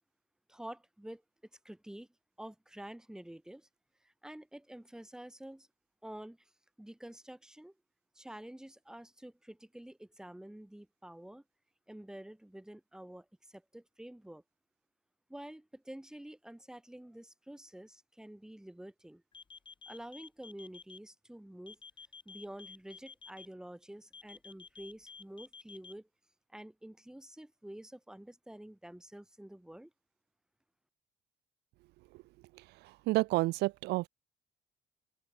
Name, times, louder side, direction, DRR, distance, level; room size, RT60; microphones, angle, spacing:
voice 1, 0.5-1.2 1.6-2.1 2.4-3.7 4.0-5.7 6.0-6.5 6.8-7.7 8.2-11.4 11.9-14.4 15.3-19.2 19.9-21.8 22.3-26.1 26.5-29.9, right 1 dB, 5° right, 2.2 m, -49 dB
sound 1, 19.3-21.0 21.7-23.5 24.1-25.9, left 5 dB, 30° left, 6.9 m, -51 dB
voice 2, 32.5-34.1, right 20 dB, 80° right, 0.4 m, -31 dB
open air
cardioid pair, 110°, 17 cm